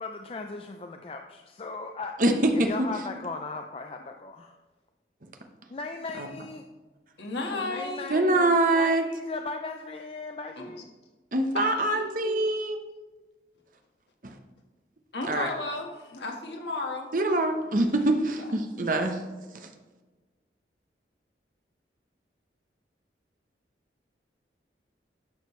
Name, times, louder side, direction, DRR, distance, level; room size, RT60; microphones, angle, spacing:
voice 1, 0.0-2.1 2.5-4.5 5.7-6.6 7.6-10.9, left 3 dB, 30° left, 4 dB, 0.4 m, -37 dB
voice 2, 2.2-2.5 8.1-9.0 11.3-12.8 15.3-15.5 17.1-19.2, right 2 dB, 50° right, 5 dB, 0.9 m, -24 dB
voice 3, 7.2-8.1 10.6-10.7 11.5-12.4 15.1-17.1 18.4-18.5, left 2 dB, 80° left, 1 dB, 1.6 m, -34 dB
11.5 x 6.5 x 3.2 m, 1.3 s
head